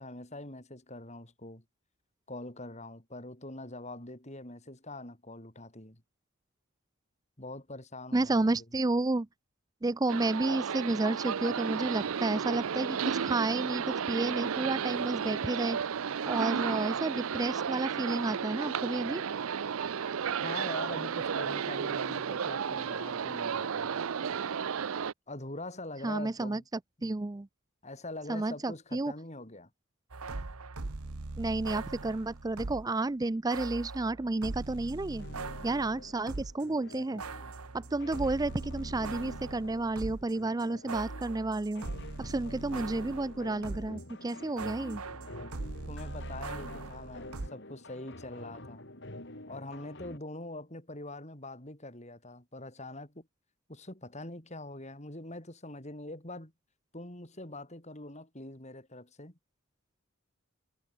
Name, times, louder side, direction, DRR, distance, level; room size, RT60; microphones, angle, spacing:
voice 1, 0.0-1.6 2.3-6.0 7.4-8.5 20.4-23.9 25.3-26.6 27.0-27.1 27.8-29.7 45.9-48.9 49.5-53.3 53.7-56.5 56.9-59.3, left 2 dB, 30° left, 4.0 m, -43 dB
voice 2, 8.1-9.3 9.8-15.8 16.3-19.2 26.0-26.6 27.0-27.5 28.3-29.1 31.4-35.3 35.6-37.2 37.7-41.8 42.2-45.0, right 2 dB, 15° right, 0.4 m, -31 dB
sound 1, 10.1-25.1, right 7 dB, 70° right, 0.5 m, -33 dB
sound 2, 30.1-32.9 33.5-36.6 36.9-44.0 44.3-47.5, right 3 dB, 90° right, 1.2 m, -41 dB
sound 3, 35.2-50.2, left 2 dB, 55° left, 3.8 m, -48 dB
head